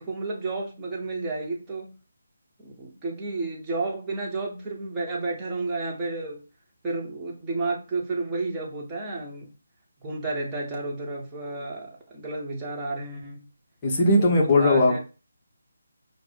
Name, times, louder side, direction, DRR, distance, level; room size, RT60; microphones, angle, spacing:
voice 1, 0.0-1.9 2.6-6.4 6.8-9.5 10.0-13.5 14.2-15.0, right 3 dB, 15° right, -4 dB, 1.0 m, -31 dB
voice 2, 13.8-15.0, left 2 dB, 25° left, -1 dB, 0.9 m, -19 dB
4.9 x 2.0 x 3.5 m, 0.32 s
figure-of-eight pair, 155°, 0 cm